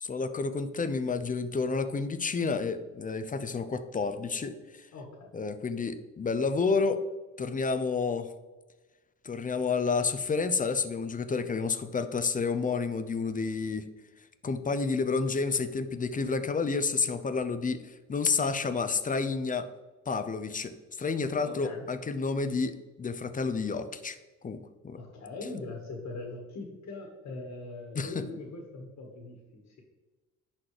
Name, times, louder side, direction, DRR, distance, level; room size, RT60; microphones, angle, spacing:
voice 1, 0.0-4.9 5.3-7.0 7.4-8.3 9.2-13.9 14.4-19.7 20.1-24.2 24.4-25.0 27.9-28.2, left 4 dB, 25° left, 11 dB, 0.6 m, -30 dB
voice 2, 4.9-5.3 21.4-21.9 24.9-29.8, left 3 dB, 60° left, 1 dB, 1.6 m, -41 dB
10.5 x 4.3 x 3.3 m, 1.2 s
cardioid pair, 90°, 30 cm